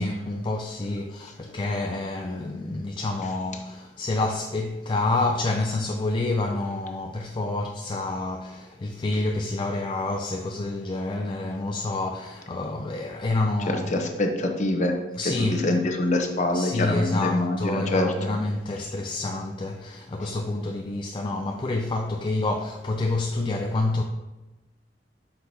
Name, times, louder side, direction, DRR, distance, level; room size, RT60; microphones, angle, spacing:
voice 1, 0.0-14.0 15.2-15.6 16.5-24.0, left 2 dB, 25° left, 0.4 m, -28 dB
voice 2, 13.7-14.9 15.2-18.1 20.2-20.3, left 2 dB, 45° left, 0.8 m, -25 dB
7.7 x 5.6 x 2.8 m
head